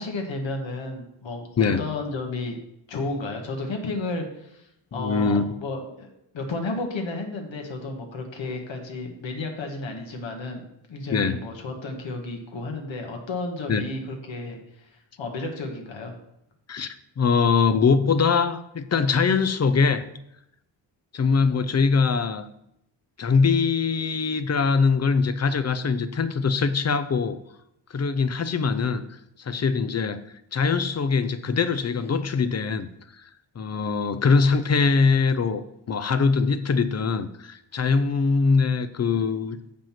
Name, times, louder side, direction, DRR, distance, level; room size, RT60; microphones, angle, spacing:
voice 1, 0.0-2.6 2.9-6.1 6.3-16.2, left 2 dB, 75° left, 2 dB, 1.6 m, -32 dB
voice 2, 4.9-5.4 11.1-11.4 13.7-13.8 16.7-20.0 21.1-22.5 23.2-27.4 27.9-29.0 29.4-30.2 30.5-32.9 33.2-33.3 33.6-35.6 35.9-39.6, left 5 dB, 35° left, 12 dB, 0.6 m, -22 dB
7.4 x 5.2 x 5.9 m, 0.80 s
cardioid pair, 90°, 46 cm